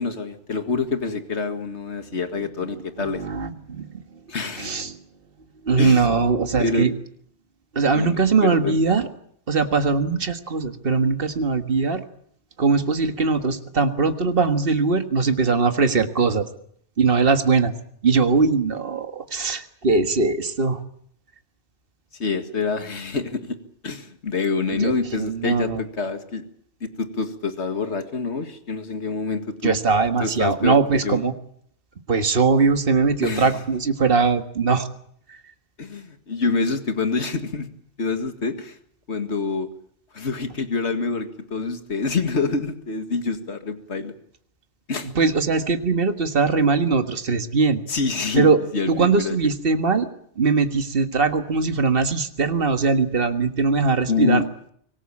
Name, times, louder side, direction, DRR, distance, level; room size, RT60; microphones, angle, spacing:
voice 1, 0.0-3.2 4.3-4.8 5.8-6.1 6.6-6.9 7.9-8.8 22.1-23.5 23.8-26.4 26.8-29.8 30.2-30.8 31.0-31.2 33.2-33.6 35.8-37.7 38.0-38.8 39.1-39.7 40.1-44.1 44.9-45.1 47.9-49.4 54.1-54.5, left 4 dB, 75° left, 8 dB, 2.2 m, -26 dB
voice 2, 3.0-3.9 4.6-5.0 5.7-6.9 7.7-9.0 9.5-12.0 12.6-16.5 17.0-17.7 18.0-20.8 24.8-25.8 29.6-31.3 32.1-34.9 35.3-35.4 45.0-47.8 48.4-48.6 48.9-50.1 50.4-54.4, right 4 dB, 55° right, 8 dB, 1.9 m, -21 dB
25.0 x 19.0 x 8.6 m, 0.66 s
omnidirectional pair, 1.2 m